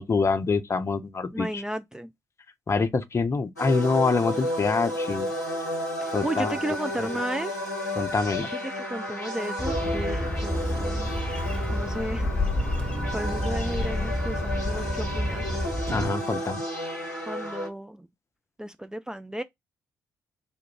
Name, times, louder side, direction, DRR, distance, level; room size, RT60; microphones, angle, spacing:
voice 1, 0.0-1.6 2.7-5.3 6.1-6.5 7.0-7.1 8.0-8.5 15.9-16.6, left 4 dB, 30° left, 0.7 m, -25 dB
voice 2, 1.3-2.1 6.0-7.6 8.5-11.2 11.7-15.7 17.3-18.1 18.6-19.4, right 1 dB, 10° right, 0.4 m, -34 dB
sound 1, 3.6-17.7, equal, 90° left, 0.7 m, -32 dB
Bird, 9.6-16.1, left 1 dB, 10° left, 1.3 m, -29 dB
sound 2, 10.5-16.3, right 4 dB, 45° right, 0.9 m, -40 dB
3.5 x 2.5 x 4.4 m
figure-of-eight pair, 40°, 9 cm